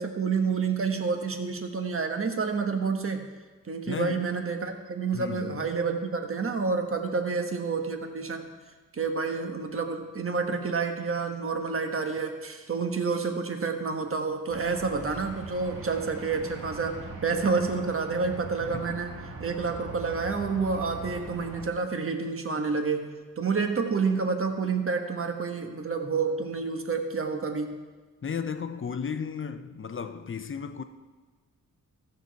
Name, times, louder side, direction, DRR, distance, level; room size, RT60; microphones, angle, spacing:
voice 1, 0.0-3.2 3.7-8.5 8.9-19.1 19.4-27.7, right 4 dB, 40° right, 1.2 m, -29 dB
voice 2, 3.9-4.3 5.1-5.7 18.6-19.2 28.2-30.8, left 6 dB, 35° left, 0.7 m, -34 dB
sound 1, 14.5-21.7, right 3 dB, 80° right, 1.6 m, -41 dB
14.5 x 6.7 x 4.6 m
cardioid pair, 75°, 34 cm